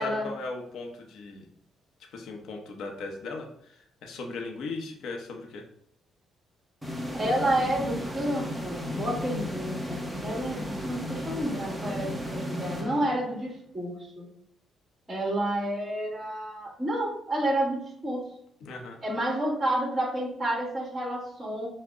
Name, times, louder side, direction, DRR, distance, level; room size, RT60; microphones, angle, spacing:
voice 1, 0.0-1.5 2.1-5.6 18.6-19.0, left 3 dB, 75° left, 2 dB, 0.9 m, -38 dB
sound 1, 6.8-13.6, left 1 dB, 5° right, 0.7 m, -35 dB
voice 2, 7.1-14.3 15.1-18.3 19.0-21.7, right 1 dB, 25° right, -2 dB, 1.8 m, -30 dB
5.8 x 2.2 x 3.8 m, 0.71 s
cardioid pair, 90°, 0 cm